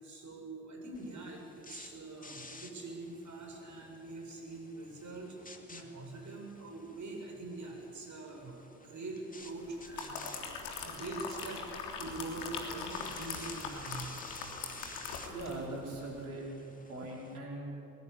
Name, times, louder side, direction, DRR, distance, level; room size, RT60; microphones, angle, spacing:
voice 1, 0.0-14.2 14.5-14.9 15.5-15.6, right 2 dB, 40° right, 1 dB, 7.6 m, -44 dB
sound 1, 0.9-17.4, left 2 dB, 20° left, 2.8 m, -53 dB
sound 2, 9.6-15.7 16.0-16.2, left 5 dB, 70° left, 3.6 m, -41 dB
voice 2, 15.3-16.5 16.9-17.8, right 2 dB, 80° right, -2 dB, 5.0 m, -41 dB
22.5 x 21.5 x 8.7 m, 2.8 s
figure-of-eight pair, 45°, 43 cm